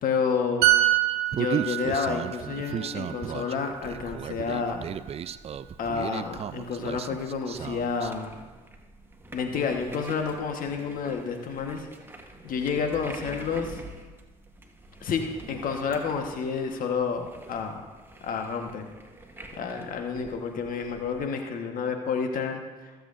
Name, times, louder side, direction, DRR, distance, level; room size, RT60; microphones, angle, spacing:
voice 1, 0.0-0.6 1.3-4.9 5.8-8.4 9.3-11.9 12.4-13.8 15.0-17.8 18.2-18.9 19.6-22.6, left 5 dB, 55° left, 4 dB, 1.4 m, -30 dB
sound 1, 0.6-4.2 4.5-4.8, right 15 dB, 75° right, 1.4 m, -26 dB
Human voice, 1.3-8.1, right 8 dB, 35° right, 0.5 m, -34 dB
sound 2, 3.6-21.3, right 2 dB, 15° right, 1.6 m, -47 dB
22.0 x 7.8 x 2.6 m, 1.3 s
hypercardioid pair, 60°, 17 cm